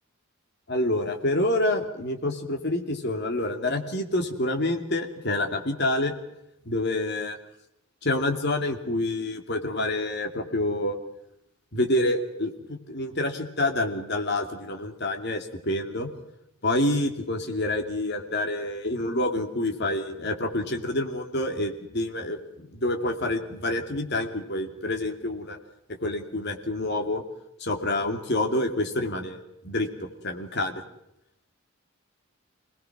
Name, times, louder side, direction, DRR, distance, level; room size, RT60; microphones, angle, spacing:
voice 1, 0.7-6.1 6.6-7.3 8.0-11.0 11.7-16.1 16.6-25.6 26.0-27.2 27.6-29.9 30.2-30.8, left 1 dB, 50° left, 4 dB, 2.6 m, -27 dB
26.0 x 19.5 x 6.1 m, 0.80 s
head